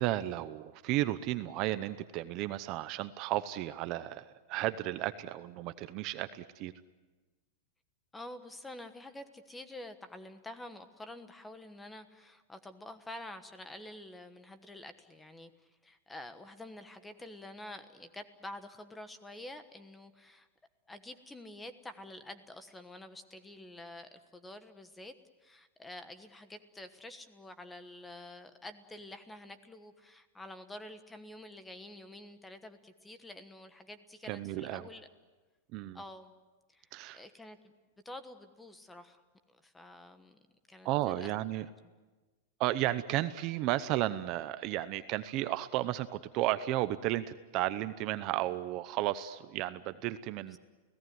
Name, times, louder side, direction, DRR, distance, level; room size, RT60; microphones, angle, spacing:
voice 1, 0.0-6.7 34.2-34.9 35.7-36.0 36.9-37.2 40.8-41.7 42.6-47.3 47.5-50.6, right 15 dB, 35° right, 12 dB, 0.8 m, -33 dB
voice 2, 8.1-20.5 20.9-25.1 25.4-35.1 35.9-36.3 36.7-37.7 38.0-39.2 39.5-40.4 40.7-41.3 50.5-50.6, left 1 dB, 5° left, 10 dB, 1.3 m, -48 dB
29.5 x 17.5 x 9.5 m, 1.3 s
supercardioid pair, 165°, 0 cm